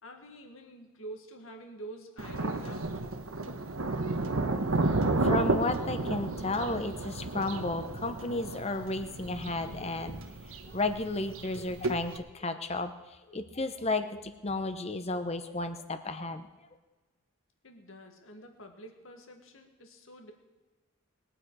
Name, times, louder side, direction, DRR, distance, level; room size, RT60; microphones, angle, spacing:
voice 1, 0.0-2.9 17.6-20.3, right 1 dB, 75° left, 4 dB, 1.8 m, -47 dB
Thunder, 2.2-12.2, right 2 dB, 80° right, 1.2 m, -32 dB
voice 2, 5.0-10.2 10.6-12.9 13.3-16.5, left 2 dB, 30° left, 9 dB, 0.9 m, -33 dB
21.0 x 9.0 x 4.8 m, 1.2 s
head